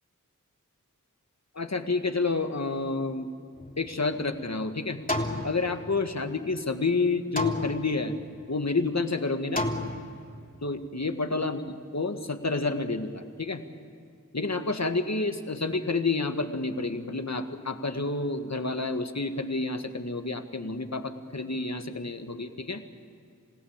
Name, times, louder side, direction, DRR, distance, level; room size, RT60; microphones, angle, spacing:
voice 1, 1.6-3.3 3.8-5.0 5.4-8.1 8.5-9.6 10.6-11.6 11.9-13.6 14.3-22.8, left 3 dB, 55° left, 7 dB, 1.9 m, -29 dB
sound 1, 3.6-4.5 5.1-6.3 7.4-8.3 9.6-10.5, left 1 dB, 25° left, 3.2 m, -32 dB
28.5 x 16.5 x 8.9 m, 2.5 s
wide cardioid pair, 40°, 32 cm